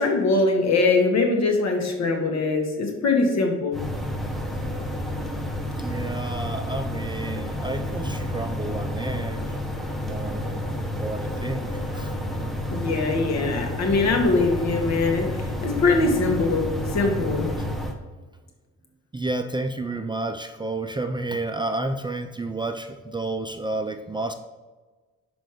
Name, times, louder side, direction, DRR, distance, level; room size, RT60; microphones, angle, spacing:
voice 1, 0.0-3.8 12.7-17.5, left 3 dB, 60° left, 2 dB, 1.7 m, -22 dB
sound 1, 3.7-17.9, left 1 dB, ahead, 1.1 m, -30 dB
voice 2, 5.8-9.4 10.0-12.2 17.6-17.7 19.1-24.3, right 2 dB, 15° right, 7 dB, 0.5 m, -31 dB
6.0 x 5.1 x 5.0 m, 1.3 s
cardioid pair, 90°, 30 cm